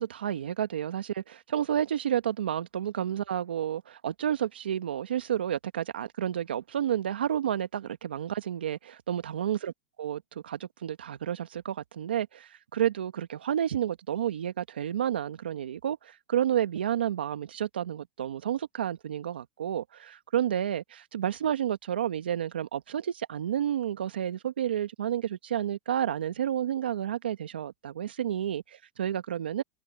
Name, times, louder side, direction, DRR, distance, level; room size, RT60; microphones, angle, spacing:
voice 1, 0.0-9.7 10.0-29.6, right 10 dB, 90° right, 1.4 m, -30 dB
hypercardioid pair, 125°, 5 cm